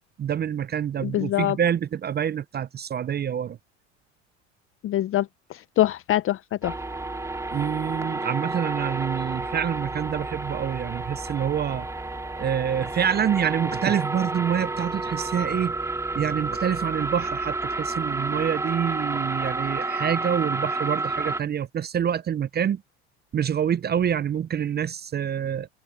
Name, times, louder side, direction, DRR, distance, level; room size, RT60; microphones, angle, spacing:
voice 1, 0.2-3.6 7.5-11.9 12.4-15.7 16.1-22.8 23.3-25.7, right 9 dB, 30° right, 0.6 m, -26 dB
voice 2, 1.0-1.6 4.8-6.8, left 14 dB, 40° left, 0.6 m, -24 dB
sound 1, 6.6-21.4, right 2 dB, 10° right, 2.4 m, -30 dB
hypercardioid pair, 80°, 34 cm